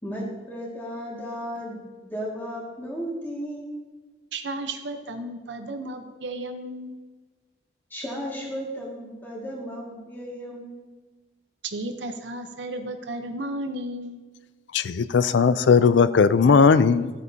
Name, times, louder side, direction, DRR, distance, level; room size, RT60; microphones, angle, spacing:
voice 1, 0.0-3.7 7.9-10.8, equal, 10° left, -4 dB, 2.0 m, -34 dB
voice 2, 4.3-7.0 11.6-14.2, right 1 dB, 75° right, 7 dB, 0.8 m, -33 dB
voice 3, 14.7-17.1, left 5 dB, 80° left, 15 dB, 0.4 m, -18 dB
13.5 x 8.1 x 2.8 m, 1.3 s
head